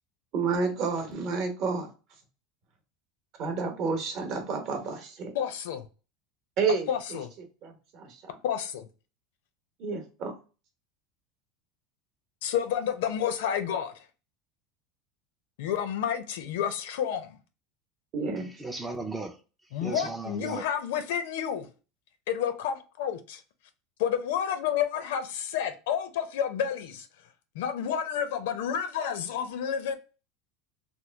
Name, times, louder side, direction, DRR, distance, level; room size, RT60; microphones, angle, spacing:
voice 1, 0.3-1.9 3.4-5.3 6.6-7.2 7.6-8.3 9.8-10.3 18.1-18.5, right 4 dB, 45° right, 0.8 m, -30 dB
voice 2, 5.3-5.9 6.9-7.3 8.4-8.9 12.4-14.0 15.6-17.4 19.7-21.7 22.3-23.4 24.0-27.1 27.5-30.0, left 9 dB, 80° left, 0.5 m, -30 dB
voice 3, 18.6-19.4 19.8-20.6, right 3 dB, 10° right, 0.4 m, -35 dB
3.0 x 2.2 x 3.2 m
supercardioid pair, 160°, 0 cm